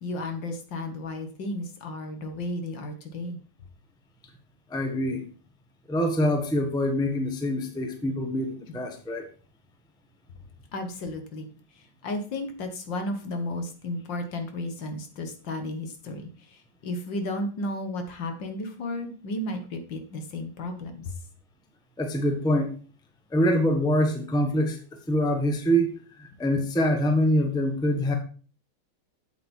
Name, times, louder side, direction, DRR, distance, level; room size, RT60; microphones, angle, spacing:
voice 1, 0.0-3.4 8.7-8.8 10.7-11.5 11.8-21.2, left 1 dB, 60° left, 6 dB, 2.0 m, -33 dB
voice 2, 4.7-5.2 5.9-9.3 22.0-22.7 23.3-24.8 25.1-28.1, equal, 5° left, 5 dB, 0.9 m, -25 dB
8.0 x 8.0 x 4.4 m, 0.39 s
omnidirectional pair, 2.3 m